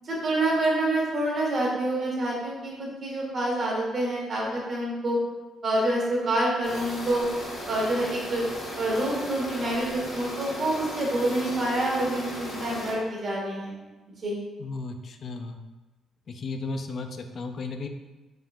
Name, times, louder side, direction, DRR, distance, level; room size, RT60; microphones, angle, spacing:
voice 1, 0.0-5.2 5.6-7.3 7.6-8.4 8.8-13.8 14.2-14.4, right 1 dB, 50° right, -3 dB, 0.9 m, -27 dB
sound 1, 6.6-12.9, left 1 dB, 70° left, 1.2 m, -36 dB
voice 2, 14.6-15.6 16.3-17.9, left 3 dB, 50° left, 6 dB, 0.3 m, -34 dB
3.6 x 2.7 x 2.3 m, 1.1 s
cardioid pair, 90°, 0 cm